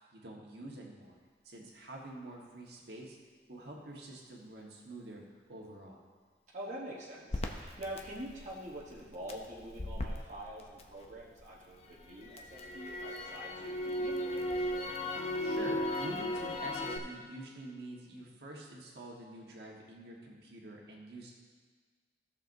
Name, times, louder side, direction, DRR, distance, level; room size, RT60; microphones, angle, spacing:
voice 1, 0.1-1.2 1.4-3.2 3.5-5.2 5.5-6.0 15.4-21.3, right 1 dB, 65° right, -2 dB, 1.4 m, -47 dB
voice 2, 6.5-14.4, right 1 dB, 40° right, -6 dB, 1.1 m, -45 dB
Crackle, 7.3-11.4 11.8-17.0, left 1 dB, 35° left, 0.6 m, -37 dB
15.0 x 6.7 x 2.7 m, 1.5 s
head